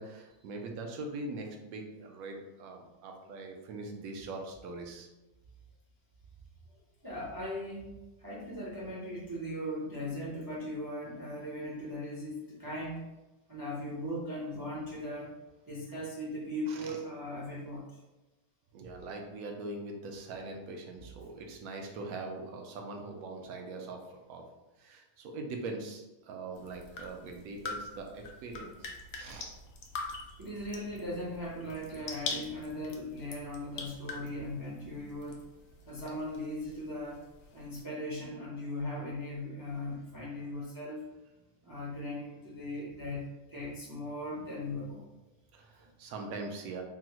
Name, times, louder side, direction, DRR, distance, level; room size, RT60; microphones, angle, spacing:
voice 1, 0.0-5.1 16.7-17.0 18.7-24.0 24.3-24.4 24.8-28.7 29.2-29.5 45.5-46.8, right 3 dB, 75° right, 2 dB, 1.0 m, -42 dB
voice 2, 6.7-13.1 13.5-15.3 15.6-18.0 21.0-21.1 30.4-35.4 35.9-37.2 37.5-41.0 41.6-43.2 43.5-45.0 45.8-45.9, left 1 dB, 35° right, -6 dB, 0.3 m, -39 dB
sound 1, 26.5-37.8, left 4 dB, 75° left, 1.0 m, -44 dB
3.7 x 2.0 x 2.9 m, 1.0 s
omnidirectional pair, 1.5 m